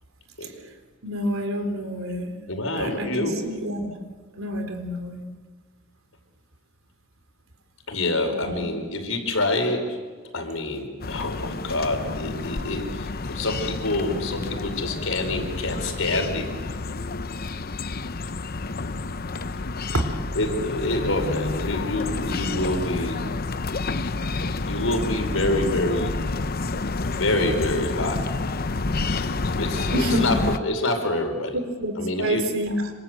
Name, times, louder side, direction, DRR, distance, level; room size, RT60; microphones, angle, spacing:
voice 1, 1.0-2.4 2.7-3.9 4.3-5.2 8.3-8.7 19.9-20.1 29.9-30.4 31.5-32.9, equal, 80° right, 6 dB, 3.7 m, -28 dB
voice 2, 2.5-3.4 7.9-10.0 10.3-16.5 20.4-23.2 24.4-26.1 27.1-28.3 29.0-29.3 29.6-31.6 32.0-32.5, left 2 dB, 75° left, 4 dB, 5.2 m, -27 dB
sound 1, 11.0-30.6, left 3 dB, 45° left, 0.8 m, -29 dB
26.5 x 26.5 x 8.1 m, 1.5 s
head